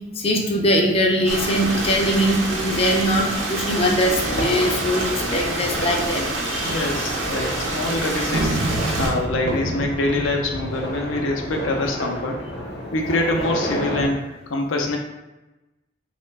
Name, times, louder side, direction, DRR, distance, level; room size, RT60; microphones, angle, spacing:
voice 1, 0.2-6.9, equal, 30° left, 1 dB, 0.4 m, -21 dB
Stream, 1.3-9.1, right 2 dB, 80° right, 0.7 m, -27 dB
sound 1, 3.5-14.1, equal, 60° left, 0.8 m, -31 dB
voice 2, 6.5-8.6 9.0-15.0, left 2 dB, 90° left, 2 dB, 0.5 m, -25 dB
sound 2, 8.3-11.9, right 2 dB, 60° right, 0.3 m, -28 dB
3.0 x 2.2 x 3.2 m, 1.0 s
head